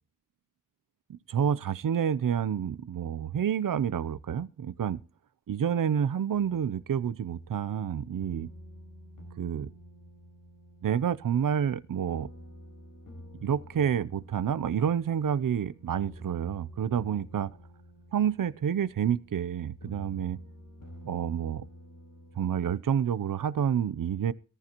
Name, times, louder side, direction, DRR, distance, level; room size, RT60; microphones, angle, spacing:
voice 1, 1.3-5.0 5.5-8.5 9.4-9.7 10.8-12.3 13.4-17.5 18.1-20.4 21.0-21.6 22.4-24.3, right 8 dB, 80° right, 0.6 m, -29 dB
sound 1, 6.3-22.7, equal, 85° left, 4.7 m, -50 dB
18.5 x 12.5 x 2.9 m
wide cardioid pair, 115°, 32 cm